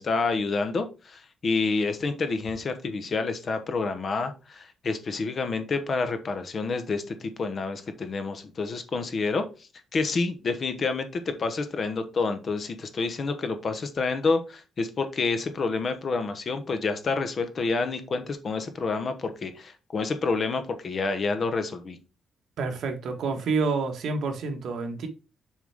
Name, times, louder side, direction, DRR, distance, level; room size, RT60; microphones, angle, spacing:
voice 1, 0.0-9.4 9.9-22.0, left 4 dB, 35° left, 1.0 m, -28 dB
voice 2, 22.6-25.1, right 4 dB, 65° right, 1.7 m, -28 dB
7.4 x 4.6 x 3.5 m
cardioid pair, 160°, 0 cm